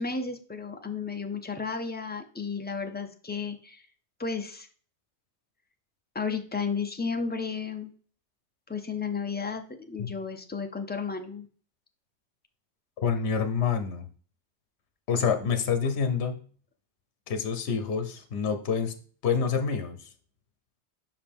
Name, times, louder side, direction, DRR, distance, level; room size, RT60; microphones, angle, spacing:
voice 1, 0.0-3.8 4.2-4.7 6.1-7.9 8.7-11.5, left 5 dB, 15° left, 5 dB, 0.3 m, -33 dB
voice 2, 13.0-14.1 15.1-16.4 17.3-18.9 19.2-20.1, left 6 dB, 75° left, 8 dB, 1.0 m, -27 dB
5.5 x 4.9 x 3.5 m, 0.43 s
omnidirectional pair, 1.1 m